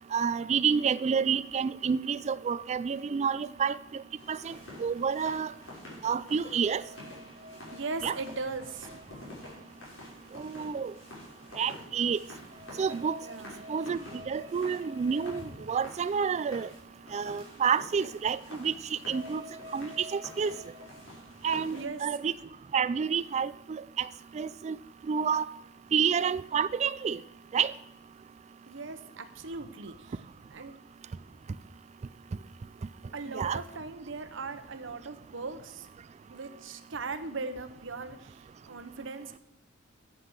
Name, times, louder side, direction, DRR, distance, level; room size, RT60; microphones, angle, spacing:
voice 1, 0.1-3.8 4.3-4.5 4.8-5.5 6.0-6.8 8.0-8.1 10.3-10.9 11.6-12.2 12.8-13.2 13.7-14.0 14.3-16.7 17.1-19.4 19.7-20.5 21.4-22.3 22.7-24.1 24.3-24.8 25.1-25.5 25.9-27.2 27.5-27.7 33.3-33.6, right 6 dB, 35° right, 0.3 m, -29 dB
sound 1, 4.2-21.8, left 1 dB, 75° left, 5.7 m, -47 dB
voice 2, 7.7-8.9 13.2-13.6 21.7-22.0 28.7-30.2 30.5-30.7 33.1-35.9 36.3-39.4, right 3 dB, 70° right, 1.0 m, -39 dB
11.5 x 7.7 x 6.4 m
head